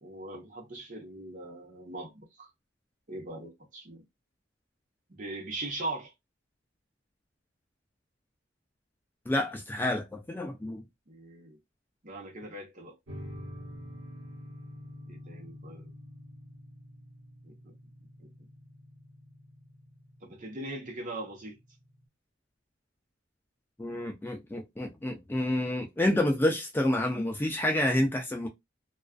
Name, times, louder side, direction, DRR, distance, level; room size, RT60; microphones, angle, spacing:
voice 1, 0.0-2.5 3.1-4.0 5.1-6.1 11.1-11.6 12.0-13.0 15.1-15.9 17.4-17.7 18.2-18.3 20.2-21.6, right 2 dB, 40° right, 0.9 m, -40 dB
voice 2, 9.3-10.8 23.8-28.5, left 1 dB, 10° left, 0.3 m, -29 dB
sound 1, 13.1-22.0, left 1 dB, 65° right, 1.0 m, -48 dB
2.3 x 2.3 x 2.3 m
head